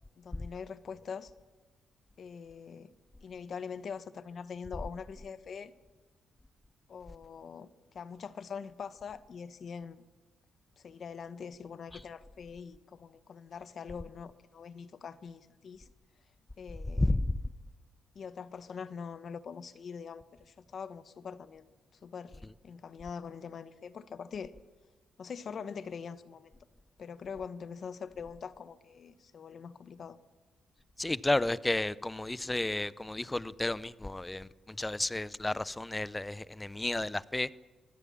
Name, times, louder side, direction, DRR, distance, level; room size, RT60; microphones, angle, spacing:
voice 1, 0.2-1.3 2.2-2.9 3.2-5.7 6.9-10.1 10.8-15.9 16.6-17.2 18.1-21.7 22.0-24.5 25.2-26.5 27.0-30.2, left 6 dB, 55° left, 1.0 m, -43 dB
voice 2, 17.0-17.4 31.0-37.5, left 2 dB, 15° left, 0.6 m, -32 dB
24.0 x 17.0 x 7.4 m
cardioid pair, 90°, 0 cm